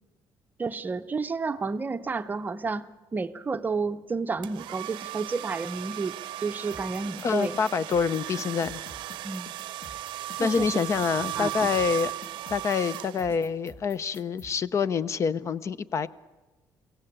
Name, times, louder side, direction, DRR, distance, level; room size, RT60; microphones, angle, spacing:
voice 1, 0.6-7.5 9.2-9.5 10.4-10.8 11.3-11.5, right 4 dB, 25° right, 11 dB, 0.6 m, -31 dB
sound 1, 4.4-13.6, right 14 dB, 90° right, 0.6 m, -36 dB
sound 2, 6.7-14.5, left 2 dB, 20° left, 1.5 m, -47 dB
voice 2, 7.2-8.8 10.4-12.1 12.5-16.1, left 6 dB, 40° left, 17 dB, 0.6 m, -26 dB
23.0 x 17.0 x 8.6 m, 1.2 s
cardioid pair, 145°, 8 cm